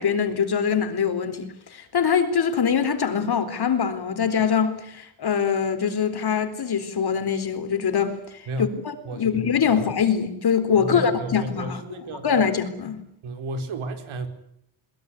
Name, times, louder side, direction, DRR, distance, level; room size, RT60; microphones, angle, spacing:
voice 1, 0.0-8.2 8.6-11.8 12.2-13.0, left 7 dB, 50° left, 4.0 m, -23 dB
voice 2, 9.0-9.4 10.7-12.3 13.2-14.3, right 2 dB, 70° right, 4.7 m, -32 dB
22.0 x 22.0 x 10.0 m
cardioid pair, 125°, 50 cm